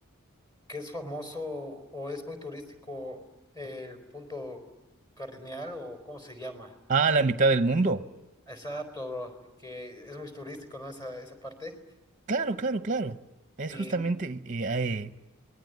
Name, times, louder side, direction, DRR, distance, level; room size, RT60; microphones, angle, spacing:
voice 1, 0.7-3.2 3.5-4.6 5.2-6.8 8.5-9.3 9.6-11.8 13.7-14.0, left 1 dB, 20° left, 4.2 m, -39 dB
voice 2, 6.9-8.1 12.3-13.2 13.6-15.2, right 3 dB, 35° right, 0.8 m, -26 dB
27.0 x 21.5 x 9.3 m
head